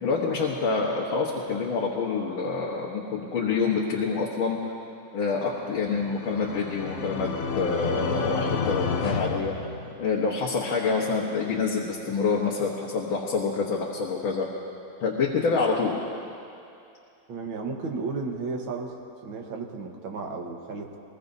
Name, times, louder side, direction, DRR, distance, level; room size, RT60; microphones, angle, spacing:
voice 1, 0.0-4.6 5.1-7.3 7.6-9.7 10.0-14.5 15.0-15.9, left 4 dB, 85° left, -3 dB, 2.1 m, -27 dB
sound 1, 5.8-10.3, left 5 dB, 55° left, 1.0 m, -30 dB
voice 2, 17.3-18.9 19.2-21.0, right 4 dB, 80° right, 1 dB, 2.1 m, -33 dB
23.0 x 20.5 x 2.7 m, 2.6 s
omnidirectional pair, 2.2 m